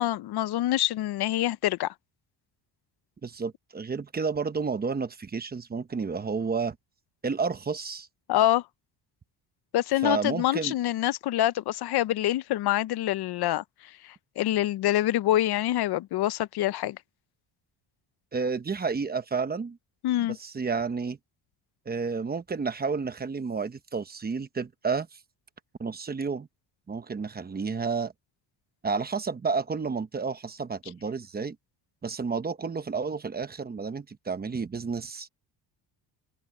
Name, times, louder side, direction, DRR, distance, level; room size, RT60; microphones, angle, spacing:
voice 1, 0.0-1.9 8.3-8.6 9.7-13.6 14.0-17.0 20.0-20.4, left 14 dB, 65° left, 0.6 m, -26 dB
voice 2, 3.2-6.8 7.2-8.1 10.0-10.7 18.3-19.8 20.2-21.2 21.9-25.2 25.8-26.5 26.9-28.1 28.8-31.6 32.0-35.3, right 5 dB, 20° right, 0.9 m, -31 dB
cardioid pair, 155°, 42 cm